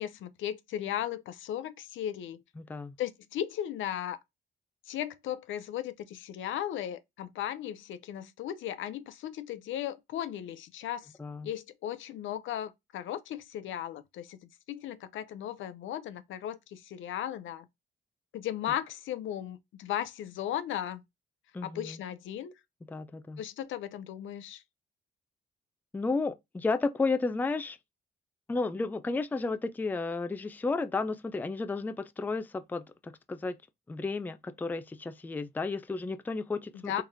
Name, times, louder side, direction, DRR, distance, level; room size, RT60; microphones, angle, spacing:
voice 1, 0.0-2.4 3.0-4.2 4.9-11.1 11.4-14.4 14.7-17.7 18.3-21.0 21.6-22.5 23.4-24.6 36.7-37.0, left 11 dB, 75° left, 0.6 m, -36 dB
voice 2, 2.6-2.9 11.2-11.5 21.5-22.0 22.9-23.4 25.9-27.8 28.5-33.6 33.9-37.0, left 3 dB, 10° left, 0.4 m, -32 dB
3.8 x 3.2 x 2.6 m
cardioid pair, 90°, 20 cm